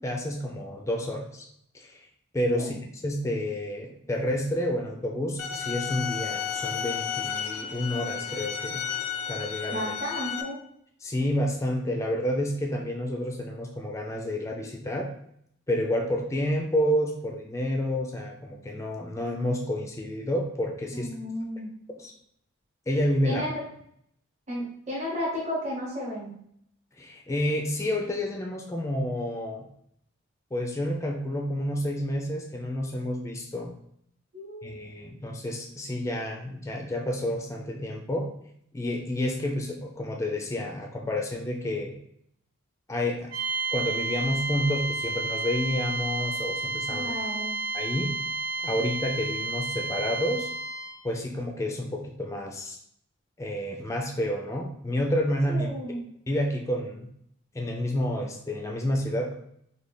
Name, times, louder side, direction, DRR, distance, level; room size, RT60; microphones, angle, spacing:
voice 1, 0.0-1.4 1.7-2.1 2.3-8.8 9.3-9.9 11.0-15.1 15.7-21.1 22.0-22.1 22.9-23.4 27.0-29.7 30.5-33.7 34.6-38.3 38.7-41.9 42.9-43.3 43.7-47.1 47.7-48.2 48.6-50.5 51.0-52.8 53.4-55.7 56.3-57.1 57.5-59.3, left 1 dB, 15° left, 1 dB, 0.4 m, -29 dB
sound 1, 5.4-10.4, left 8 dB, 80° left, 0.4 m, -32 dB
voice 2, 9.7-10.6 20.9-21.7 23.2-23.7 24.5-26.3 34.3-35.1 46.9-47.6 55.5-56.1, equal, 30° right, -5 dB, 1.0 m, -33 dB
sound 2, 43.3-51.0, right 3 dB, 65° right, 0.8 m, -31 dB
3.3 x 2.2 x 3.8 m, 0.69 s
head